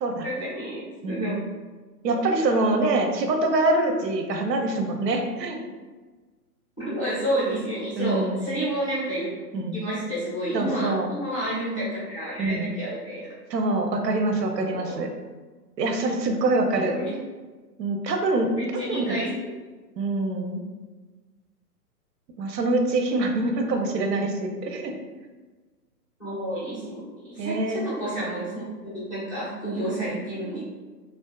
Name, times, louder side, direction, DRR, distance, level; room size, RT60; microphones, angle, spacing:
voice 1, 0.2-1.3 2.1-2.2 6.8-9.3 9.7-13.3 14.6-15.0 17.0-17.1 18.6-19.3 26.2-28.6 28.9-30.6, right 1 dB, 25° left, -9 dB, 0.3 m, -30 dB
voice 2, 1.0-1.3 2.0-5.6 8.0-8.5 9.5-9.8 10.5-11.1 12.4-12.7 13.5-15.1 15.8-17.0 17.8-19.2 20.0-20.6 22.4-25.0 27.4-27.8, right 2 dB, 90° right, 4 dB, 0.6 m, -25 dB
2.4 x 2.3 x 2.3 m, 1.3 s
hypercardioid pair, 145°, 48 cm